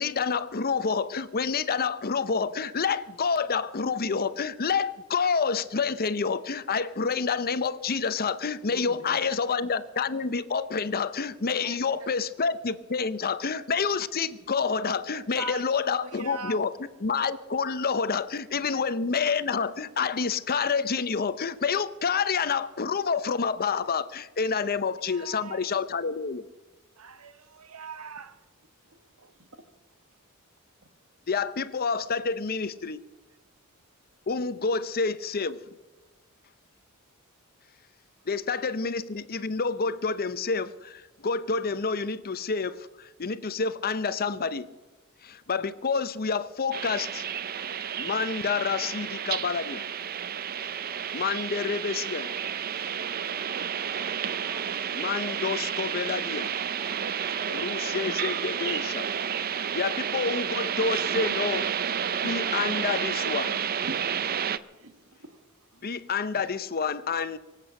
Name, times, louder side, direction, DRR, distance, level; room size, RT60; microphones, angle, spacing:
voice 1, 0.0-16.7 17.0-26.4 31.3-33.0 34.3-35.6 38.3-44.7 45.2-47.2 48.0-49.9 51.1-52.3 54.9-56.5 57.5-59.1 59.7-61.7 62.2-63.6 65.8-67.4, left 5 dB, 45° left, 0.7 m, -28 dB
voice 2, 8.7-9.4 11.6-12.1 15.3-15.6 16.0-16.6 18.7-18.8 24.6-24.7 25.1-25.7 27.0-28.4 29.2-29.3, right 3 dB, 90° right, 1.2 m, -41 dB
voice 3, 29.3-29.6 63.8-64.0 64.7-65.8 66.2-66.5, right 1 dB, 65° right, 1.7 m, -45 dB
sound 1, 46.7-64.6, right 8 dB, 45° right, 0.5 m, -31 dB
sound 2, 50.6-57.0, left 1 dB, 5° left, 2.1 m, -54 dB
24.5 x 8.3 x 6.5 m
head